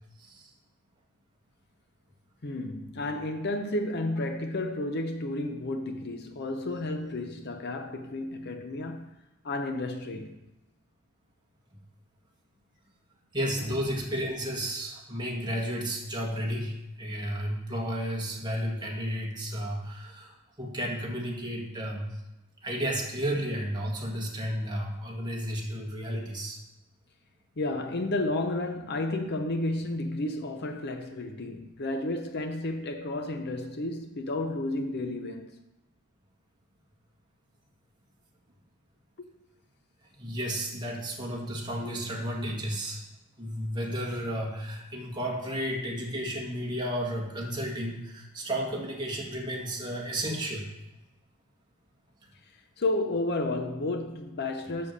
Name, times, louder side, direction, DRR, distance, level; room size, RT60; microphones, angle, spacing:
voice 1, 0.2-0.5 13.3-20.3 20.6-22.1 22.6-26.6 40.2-43.0 43.4-50.7, equal, 20° right, 1.7 m, -32 dB
voice 2, 2.4-9.2 9.4-10.4 13.6-13.8 27.6-35.6 39.2-39.3 52.8-54.9, left 2 dB, 50° left, 0.6 m, -32 dB
7.5 x 6.9 x 6.5 m
head